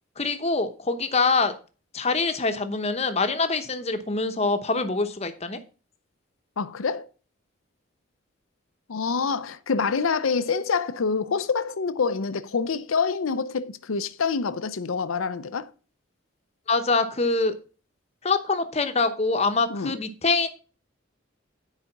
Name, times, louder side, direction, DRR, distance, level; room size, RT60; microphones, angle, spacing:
voice 1, 0.2-1.5 1.9-5.6 16.7-17.5 18.2-20.5, left 3 dB, 30° left, 0.9 m, -24 dB
voice 2, 6.6-7.1 8.9-15.7 19.7-20.0, left 5 dB, 80° left, 0.6 m, -26 dB
9.7 x 5.0 x 5.8 m
head